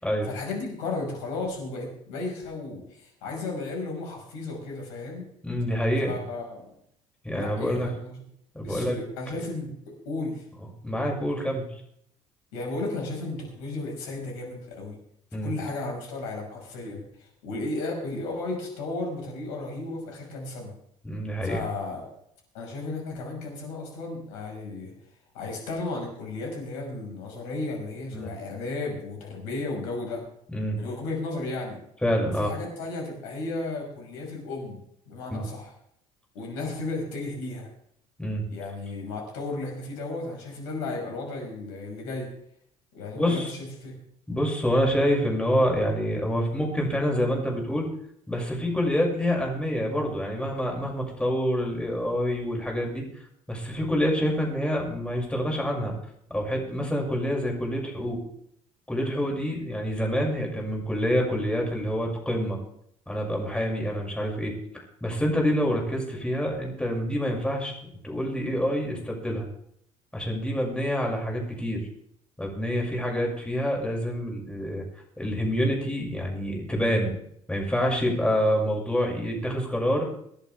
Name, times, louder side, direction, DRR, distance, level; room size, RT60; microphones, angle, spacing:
voice 1, 0.2-5.2 6.0-6.8 7.3-8.2 8.6-10.4 12.5-15.0 15.4-20.7 21.4-22.1 22.5-24.9 25.3-30.2 30.7-31.8 32.3-34.8 35.1-35.7 36.3-37.7 38.5-42.3 42.9-43.9, left 2 dB, 70° left, 1 dB, 5.6 m, -34 dB
voice 2, 5.4-6.1 7.2-7.9 8.5-9.0 10.8-11.6 15.3-15.5 21.0-21.6 28.1-28.3 30.5-30.8 32.0-32.5 35.3-35.5 38.2-38.4 43.1-43.5 44.3-47.9 48.3-53.0 53.5-55.9 56.3-58.2 58.9-62.6 63.1-64.5 65.0-69.5 70.1-71.8 72.4-74.8 75.2-77.2 77.5-80.1, equal, 5° left, -1 dB, 6.3 m, -27 dB
24.5 x 11.0 x 3.5 m, 0.69 s
figure-of-eight pair, 60°, 18 cm